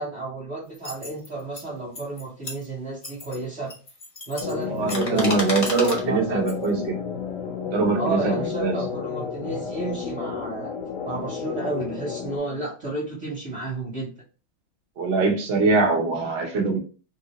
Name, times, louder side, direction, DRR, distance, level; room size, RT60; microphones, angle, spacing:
voice 1, 0.0-3.8 4.3-5.6 6.0-6.4 8.0-10.7 11.0-14.1, right 2 dB, 45° right, 1.2 m, -32 dB
sound 1, 0.7-1.6 1.9-2.7 3.0-3.4 3.7-6.0 6.5-6.7, left 1 dB, 30° left, 0.6 m, -33 dB
sound 2, 4.4-12.4, left 7 dB, 70° left, 1.2 m, -31 dB
voice 2, 4.7-6.9 7.7-8.8 15.0-16.8, right 3 dB, 60° right, 0.6 m, -23 dB
3.2 x 2.7 x 2.8 m
omnidirectional pair, 2.2 m